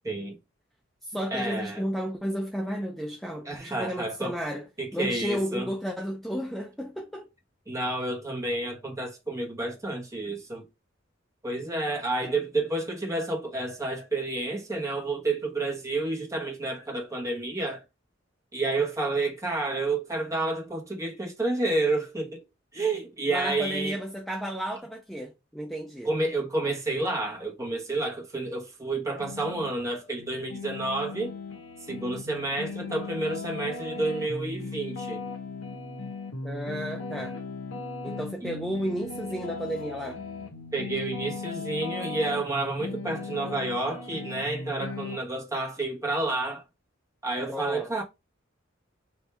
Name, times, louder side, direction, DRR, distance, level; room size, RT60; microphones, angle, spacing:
voice 1, 0.0-0.4 1.3-1.8 3.4-4.4 4.8-5.7 7.7-10.6 11.4-17.8 18.5-22.4 22.7-24.0 26.0-31.3 31.9-35.2 38.4-38.5 40.7-46.6 47.2-48.0, right 2 dB, 15° right, 1.2 m, -30 dB
voice 2, 1.0-4.7 4.9-7.2 23.3-26.1 36.4-37.4 38.0-40.2 47.4-47.9, equal, ahead, 0.5 m, -33 dB
sound 1, 29.2-29.7 30.2-45.2, left 3 dB, 85° left, 0.9 m, -37 dB
3.4 x 2.7 x 4.3 m
head